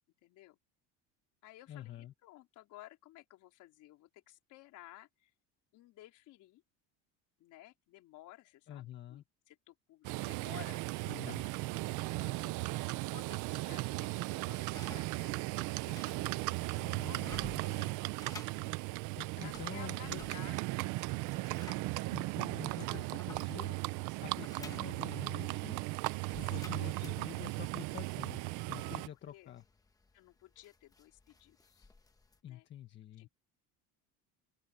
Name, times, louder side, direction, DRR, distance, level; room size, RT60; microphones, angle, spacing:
voice 1, 0.2-0.6 1.4-5.3 5.7-6.6 7.4-10.8 11.3-11.4 12.0-18.2 19.4-21.4 26.4-26.9 28.8-29.0 29.3-29.5 30.1-31.9 32.5-32.7 33.2-33.3, left 16 dB, 55° left, 4.0 m, -56 dB
voice 2, 1.7-2.1 8.7-9.2 11.1-11.4 16.8-17.9 19.2-20.2 22.1-23.8 24.2-25.8 26.2-29.6 32.4-33.3, left 10 dB, 30° left, 1.4 m, -48 dB
Livestock farm animals working animals, 10.0-29.1, right 22 dB, 55° right, 0.5 m, -37 dB
sound 1, 14.6-32.4, left 3 dB, 10° left, 1.1 m, -56 dB
open air
cardioid pair, 170°, 38 cm